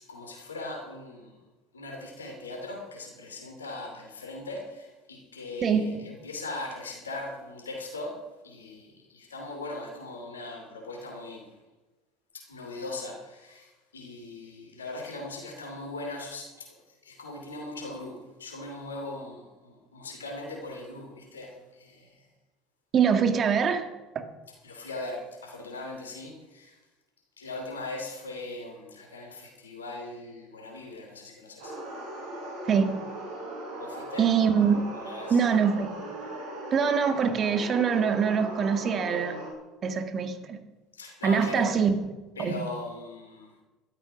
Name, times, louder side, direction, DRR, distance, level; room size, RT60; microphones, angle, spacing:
voice 1, 0.0-1.4 1.7-11.5 12.3-22.3 24.5-26.8 27.4-31.8 33.8-34.3 34.7-35.4 40.9-41.7 42.4-43.6, left 2 dB, 90° left, 2 dB, 2.8 m, -40 dB
voice 2, 22.9-23.9 32.7-32.9 34.2-34.8 35.3-35.9 36.7-39.4 39.8-40.6 41.2-41.9 42.4-42.6, right 6 dB, 40° right, 8 dB, 1.8 m, -24 dB
sound 1, 31.6-39.5, right 1 dB, 70° right, 5.8 m, -39 dB
13.0 x 12.5 x 5.9 m, 1.1 s
hypercardioid pair, 65°, 0 cm